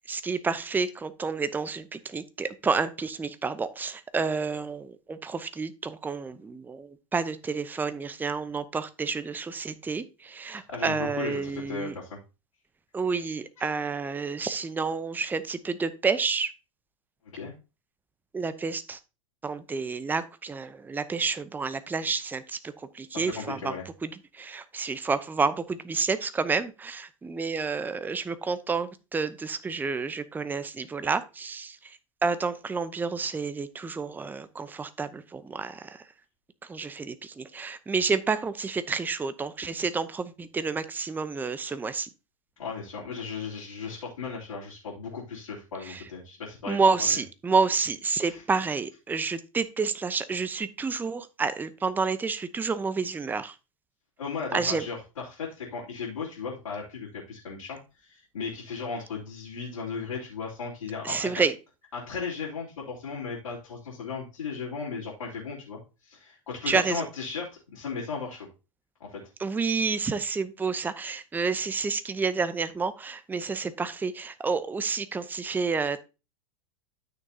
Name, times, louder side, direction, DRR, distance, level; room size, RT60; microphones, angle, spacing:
voice 1, 0.1-12.0 12.9-16.5 18.3-19.0 19.4-23.7 24.0-36.0 36.7-42.1 45.9-46.0 46.7-53.5 54.5-54.8 61.0-61.5 66.7-67.1 69.4-76.0, right 4 dB, 10° right, 13 dB, 0.7 m, -29 dB
voice 2, 10.5-12.2 13.6-13.7 17.3-17.5 23.1-23.9 42.6-47.2 48.2-48.4 54.2-61.3 61.9-68.5 69.0-69.2, left 5 dB, 75° left, -5 dB, 3.1 m, -36 dB
13.0 x 6.3 x 2.8 m, 0.30 s
figure-of-eight pair, 95°, 17 cm